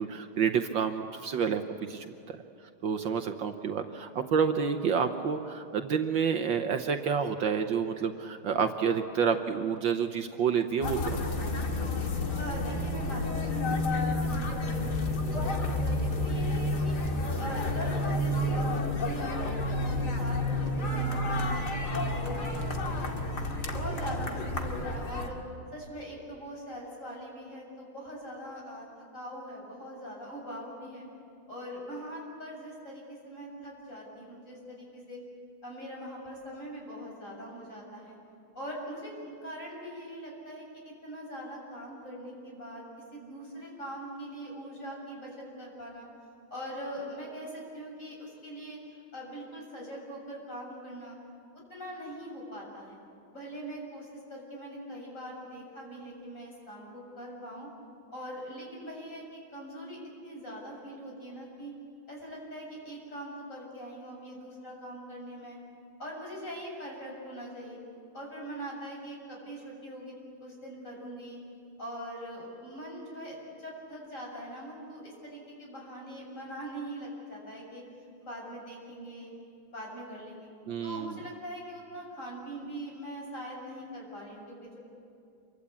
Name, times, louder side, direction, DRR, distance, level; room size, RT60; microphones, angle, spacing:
voice 1, 0.0-2.4 2.8-11.2 80.7-81.1, right 6 dB, 65° right, 6 dB, 1.6 m, -29 dB
sound 1, 10.8-25.3, left 1 dB, 50° left, 2.6 m, -30 dB
voice 2, 12.4-16.9 17.4-19.4 19.6-23.1 23.7-25.4 25.7-31.1 31.5-35.2 35.6-38.2 38.5-42.8 43.1-46.1 46.5-48.8 49.1-51.2 51.7-53.0 53.3-57.7 58.1-60.0 60.2-61.7 62.1-65.6 66.0-67.8 68.1-70.1 70.4-71.4 71.8-77.8 78.2-79.3 79.7-80.5 80.8-84.8, equal, 35° left, -2 dB, 7.5 m, -42 dB
28.0 x 24.0 x 8.5 m, 2.4 s
omnidirectional pair, 2.3 m